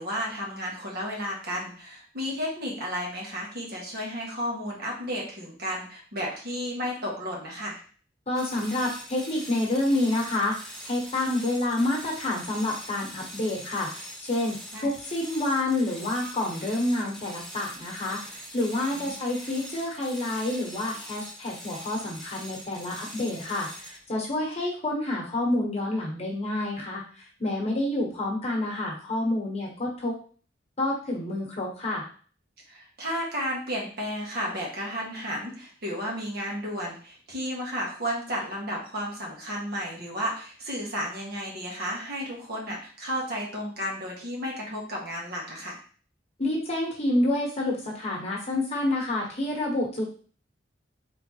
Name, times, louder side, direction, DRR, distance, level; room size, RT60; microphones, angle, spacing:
voice 1, 0.0-7.8 14.7-14.9 18.9-19.1 32.7-45.8, equal, 60° right, -2 dB, 1.5 m, -33 dB
voice 2, 8.3-30.1 30.8-32.0 46.4-50.0, left 1 dB, 35° left, -2 dB, 1.3 m, -28 dB
sound 1, 8.3-24.1, equal, 5° left, 0.8 m, -42 dB
3.8 x 3.6 x 3.1 m, 0.42 s
head